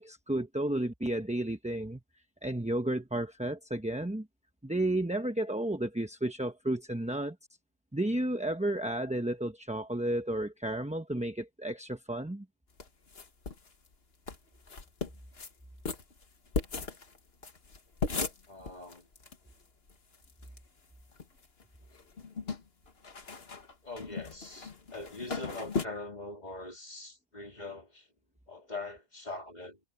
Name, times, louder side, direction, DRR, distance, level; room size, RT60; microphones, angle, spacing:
voice 1, 0.0-2.0 2.4-4.3 4.6-7.4 7.9-12.5, right 1 dB, 5° right, 0.7 m, -32 dB
sound 1, 12.8-13.7 13.9-14.0 14.3-14.4 14.7-15.5 15.8-19.4 19.6-19.7 19.9-20.6 21.0-21.6 21.9-25.8, left 4 dB, 45° left, 1.9 m, -37 dB
voice 2, 18.5-19.1 23.8-28.1 28.5-29.8, left 2 dB, 30° left, 2.9 m, -42 dB
omnidirectional pair, 1.4 m